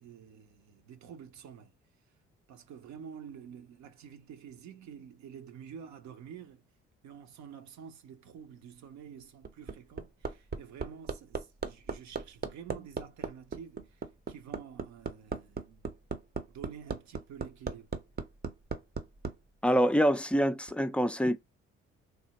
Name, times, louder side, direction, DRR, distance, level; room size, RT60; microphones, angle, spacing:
voice 1, 0.0-1.7 2.5-6.6 7.0-15.9 16.5-17.9, right 8 dB, 70° right, 0.7 m, -49 dB
Hammer, 9.2-19.3 20.7-20.8, right 5 dB, 35° right, 0.6 m, -36 dB
voice 2, 19.6-21.4, equal, 5° left, 0.3 m, -25 dB
3.3 x 2.1 x 2.8 m
supercardioid pair, 55°, 30 cm